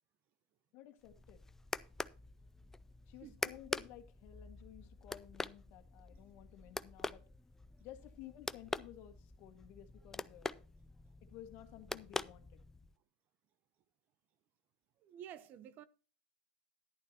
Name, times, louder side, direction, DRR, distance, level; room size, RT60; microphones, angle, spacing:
voice 1, 0.7-1.4 3.1-7.3 7.8-10.7 11.2-12.6, left 12 dB, 50° left, 1.8 m, -55 dB
sound 1, 1.0-13.0, left 3 dB, 10° left, 0.4 m, -45 dB
voice 2, 15.0-15.8, right 10 dB, 40° right, 0.7 m, -51 dB
11.5 x 10.5 x 2.8 m
hypercardioid pair, 115°, 5 cm